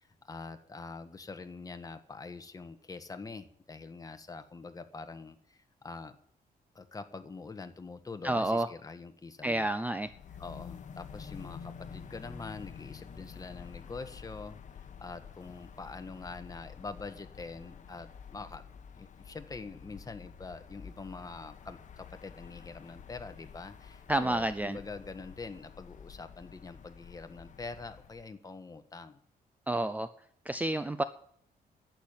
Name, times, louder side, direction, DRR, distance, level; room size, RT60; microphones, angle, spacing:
voice 1, 0.0-6.2 6.7-9.7 10.4-18.6 18.9-29.2, left 4 dB, 20° left, 8 dB, 1.4 m, -45 dB
voice 2, 8.2-8.7 9.4-10.1 24.1-24.8 29.7-30.1 30.5-31.0, right 1 dB, 10° right, 12 dB, 0.5 m, -29 dB
sound 1, 10.0-28.3, left 7 dB, 50° left, 1.2 m, -49 dB
11.5 x 9.0 x 9.5 m, 0.66 s
cardioid pair, 125°, 16 cm